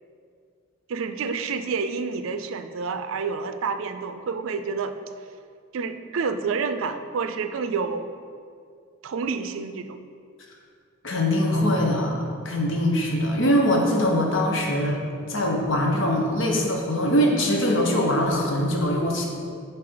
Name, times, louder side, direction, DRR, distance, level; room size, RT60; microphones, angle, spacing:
voice 1, 0.9-5.0 5.7-8.2 9.0-9.9, right 5 dB, 80° right, 9 dB, 0.4 m, -29 dB
voice 2, 11.0-12.2 12.4-15.0 15.3-19.3, equal, 65° left, 0 dB, 1.0 m, -22 dB
7.6 x 4.1 x 3.8 m, 2.2 s
head